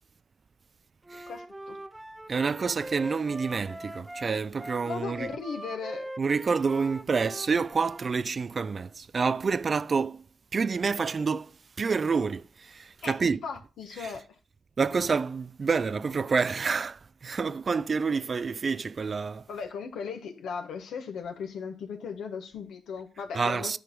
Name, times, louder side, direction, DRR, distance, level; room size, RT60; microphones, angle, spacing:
Wind instrument woodwind instrument, 1.0-8.1, right 1 dB, 15° right, 0.8 m, -42 dB
voice 1, 1.3-1.8 4.8-6.1 13.0-14.4 19.5-23.8, left 6 dB, 75° left, 1.4 m, -37 dB
voice 2, 2.3-5.3 6.2-10.2 10.5-11.5 11.8-13.4 14.0-14.1 14.8-19.5 23.3-23.8, right 5 dB, 50° right, 0.4 m, -28 dB
10.5 x 4.7 x 5.2 m
supercardioid pair, 50°, 0 cm